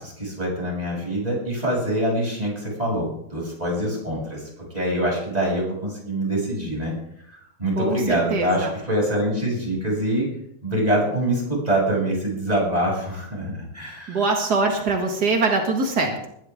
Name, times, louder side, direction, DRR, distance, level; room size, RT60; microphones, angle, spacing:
voice 1, 0.0-6.9 7.3-10.3 10.6-14.2, right 1 dB, 10° right, -3 dB, 6.8 m, -25 dB
voice 2, 7.8-8.7 14.1-16.3, right 3 dB, 80° right, 2 dB, 0.9 m, -23 dB
21.0 x 12.0 x 3.7 m, 0.72 s
omnidirectional pair, 5.0 m